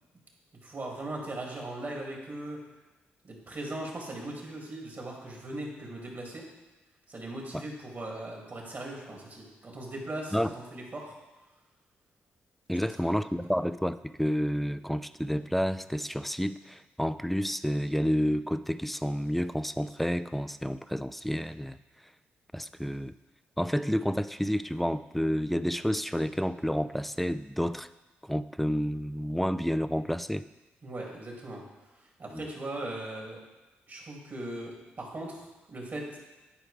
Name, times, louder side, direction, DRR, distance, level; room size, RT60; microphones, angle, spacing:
voice 1, 0.6-2.6 3.2-6.5 7.1-11.1 12.9-13.1 30.8-31.6 32.2-33.4 33.9-36.2, right 1 dB, 45° right, -2 dB, 2.4 m, -39 dB
voice 2, 12.7-21.8 22.5-23.1 23.6-27.9 28.2-30.5 32.3-32.5, equal, 5° left, 13 dB, 0.3 m, -30 dB
9.9 x 4.8 x 3.3 m, 1.1 s
supercardioid pair, 55°, 5 cm